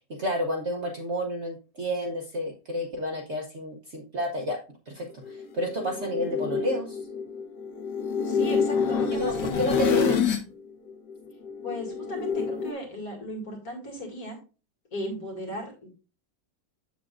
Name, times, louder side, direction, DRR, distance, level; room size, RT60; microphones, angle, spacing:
voice 1, 0.2-4.6 4.9-7.0 9.1-10.3, equal, 50° right, 2 dB, 0.9 m, -30 dB
sound 1, 5.2-10.5 10.9-12.7, left 6 dB, 75° left, 1.5 m, -27 dB
voice 2, 8.2-9.9 11.6-14.4 14.9-15.9, equal, 55° left, 1 dB, 2.5 m, -36 dB
7.5 x 7.1 x 2.5 m, 0.33 s
omnidirectional pair, 1.9 m